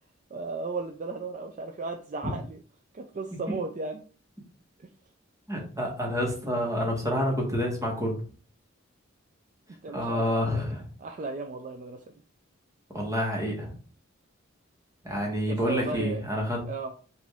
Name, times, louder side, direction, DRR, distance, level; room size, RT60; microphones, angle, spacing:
voice 1, 0.3-2.6 2.9-4.0 4.8-4.9 9.8-10.5 11.0-12.0 15.5-16.2 16.7-16.9, right 3 dB, 40° right, 4 dB, 0.4 m, -35 dB
voice 2, 5.5-8.2 9.9-10.8 12.9-13.7 15.0-16.6, equal, 15° right, 0 dB, 1.2 m, -28 dB
5.0 x 2.6 x 3.4 m, 0.39 s
head